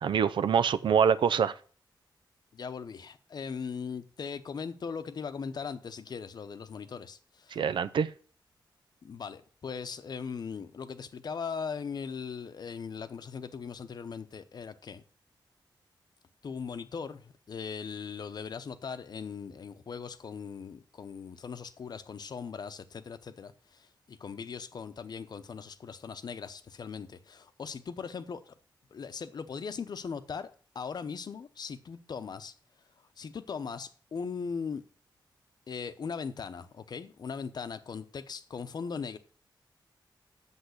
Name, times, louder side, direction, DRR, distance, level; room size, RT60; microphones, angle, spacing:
voice 1, 0.0-1.5 7.5-8.1, right 7 dB, 80° right, 0.6 m, -25 dB
voice 2, 2.5-7.6 9.0-15.0 16.4-28.5 28.9-32.5 33.2-34.8 35.7-39.2, left 6 dB, 55° left, 0.8 m, -39 dB
8.2 x 7.2 x 6.5 m
wide cardioid pair, 130°, 8 cm